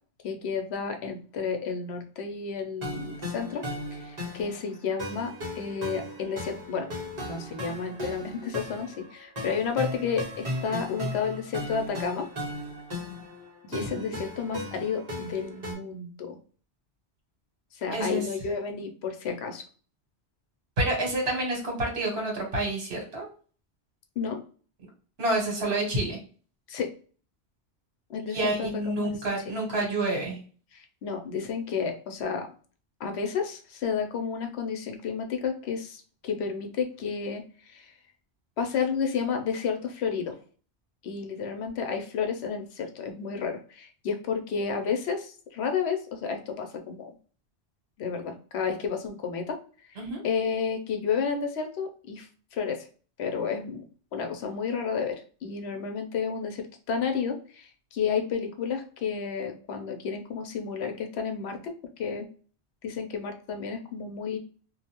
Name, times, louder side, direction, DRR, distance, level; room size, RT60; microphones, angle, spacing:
voice 1, 0.2-3.6 3.9-6.9 7.2-12.3 13.7-16.4 17.7-19.6 24.2-24.4 26.7-26.9 28.1-28.7 29.0-29.1 30.7-32.5 33.0-37.9 38.6-40.4 41.0-47.1 48.0-49.6 50.2-52.9 53.2-53.8 54.1-62.3 62.8-64.4, left 6 dB, 80° left, 5 dB, 0.9 m, -31 dB
sound 1, 2.8-15.7, left 1 dB, 40° right, 1.1 m, -37 dB
voice 2, 13.7-14.1 17.9-18.3 20.8-23.3 25.2-26.2 28.3-30.4 50.0-50.2, right 2 dB, 70° right, 0 dB, 1.4 m, -28 dB
2.5 x 2.3 x 2.8 m, 0.41 s
omnidirectional pair, 1.1 m